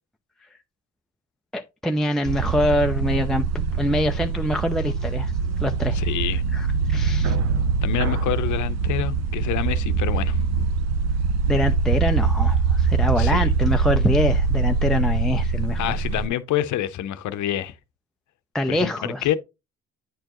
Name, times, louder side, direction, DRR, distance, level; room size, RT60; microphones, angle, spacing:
voice 1, 1.5-3.4 3.8-5.3 5.6-6.0 6.5-7.4 11.5-15.8 18.5-19.3, left 1 dB, ahead, 0.4 m, -24 dB
sound 1, 2.3-16.3, right 5 dB, 60° right, 0.6 m, -23 dB
voice 2, 5.9-6.4 7.8-10.4 13.2-13.4 15.8-17.7 18.7-19.3, left 12 dB, 75° left, 0.7 m, -27 dB
9.2 x 4.5 x 3.0 m
cardioid pair, 90°, 30 cm